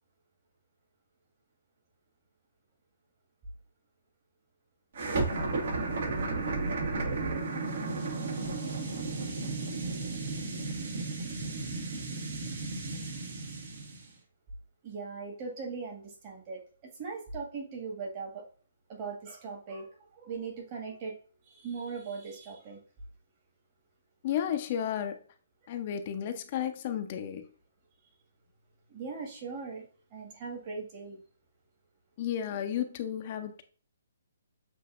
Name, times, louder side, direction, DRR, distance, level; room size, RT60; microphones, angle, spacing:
sound 1, 4.9-14.1, right 3 dB, 60° right, 1.3 m, -33 dB
voice 1, 14.8-16.6 17.0-18.5 18.9-22.8 28.9-29.8 30.1-31.2, right 4 dB, 35° right, 1.7 m, -39 dB
voice 2, 24.2-25.2 25.7-27.5 32.2-33.6, left 9 dB, 40° left, 0.6 m, -33 dB
7.6 x 2.6 x 2.4 m
hypercardioid pair, 155°, 0 cm